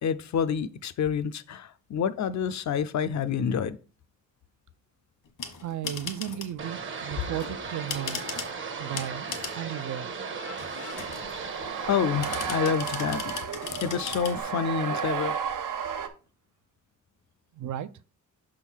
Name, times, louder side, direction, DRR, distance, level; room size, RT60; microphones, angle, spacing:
voice 1, 0.0-3.8 10.4-11.1 11.6-13.3 13.8-15.3, left 7 dB, 65° left, 0.6 m, -28 dB
sound 1, 5.3-6.6 7.2-8.6 8.9-9.6 10.5-11.3 12.2-14.4, left 6 dB, 85° left, 1.5 m, -38 dB
voice 2, 5.6-8.3 8.8-10.1 17.5-17.9, right 11 dB, 65° right, 0.5 m, -35 dB
sound 2, 6.6-12.7, right 5 dB, 40° right, 0.8 m, -36 dB
sound 3, 10.9-16.1, right 7 dB, 85° right, 0.9 m, -33 dB
6.2 x 3.7 x 6.2 m
wide cardioid pair, 170°, 31 cm